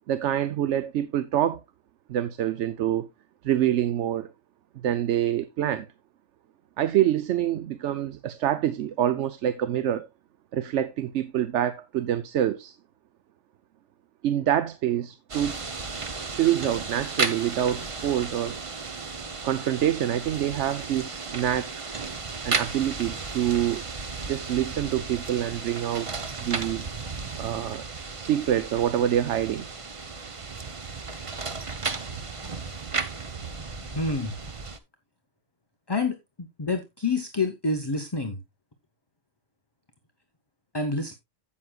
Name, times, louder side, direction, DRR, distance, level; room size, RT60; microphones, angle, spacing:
voice 1, 0.1-1.6 2.1-3.1 3.4-4.3 4.8-5.9 6.8-10.1 10.5-12.7 14.2-15.7 16.2-18.6 19.4-21.7 22.4-23.8 24.2-26.1 26.4-26.8 27.4-27.8 28.2-29.7, right 11 dB, 80° right, 1.0 m, -26 dB
sound 1, 15.3-34.8, right 4 dB, 30° right, 0.8 m, -34 dB
voice 2, 33.8-34.4 35.9-38.4 40.7-41.2, left 3 dB, 25° left, 0.9 m, -28 dB
16.0 x 6.2 x 2.3 m
omnidirectional pair, 1.2 m